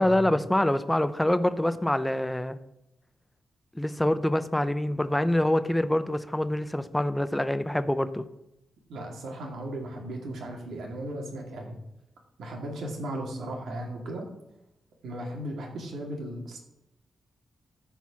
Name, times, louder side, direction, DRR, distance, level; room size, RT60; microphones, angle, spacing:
voice 1, 0.0-2.6 3.7-8.2, left 1 dB, 5° left, 12 dB, 0.6 m, -25 dB
voice 2, 8.9-11.8 12.4-14.3 15.0-16.6, right 1 dB, 85° right, 1 dB, 2.2 m, -36 dB
13.5 x 4.6 x 5.7 m, 0.86 s
wide cardioid pair, 125°, 0 cm